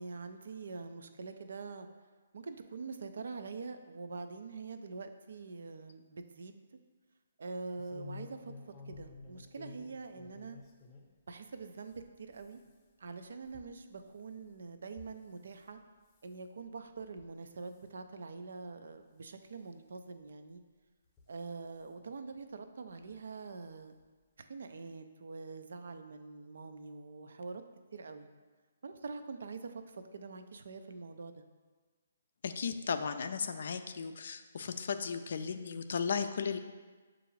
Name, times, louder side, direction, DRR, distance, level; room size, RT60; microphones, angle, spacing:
voice 1, 0.0-1.9 2.3-6.6 7.4-8.5 8.9-10.6 11.3-12.6 13.0-15.8 16.2-20.6 21.3-23.9 24.4-27.6 27.9-28.3 28.8-31.4, right 4 dB, 70° right, 8 dB, 0.4 m, -45 dB
sound 1, 7.8-11.1 11.5-15.7 16.1-16.4 17.0-17.3 17.6-17.9 18.5-18.6 18.9-19.0 20.2-20.3 21.0-21.9 23.0-23.2 23.6-23.7 24.0-24.1, left 4 dB, 15° left, 0.7 m, -53 dB
voice 2, 32.4-36.6, left 6 dB, 65° left, 9 dB, 0.3 m, -35 dB
6.7 x 2.4 x 3.1 m, 1.4 s
hypercardioid pair, 145°, 0 cm